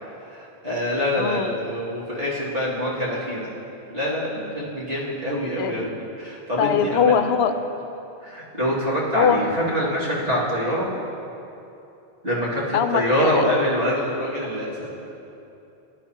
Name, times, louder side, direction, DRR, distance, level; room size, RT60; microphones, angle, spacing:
voice 1, 0.3-3.5 3.9-7.1 8.2-10.9 12.2-14.9, equal, 70° right, -7 dB, 2.5 m, -25 dB
voice 2, 1.2-1.5 5.6-5.9 6.6-7.5 9.1-9.4 12.7-13.4, left 7 dB, 80° left, 9 dB, 0.8 m, -21 dB
15.5 x 10.5 x 2.9 m, 2.8 s
omnidirectional pair, 1.0 m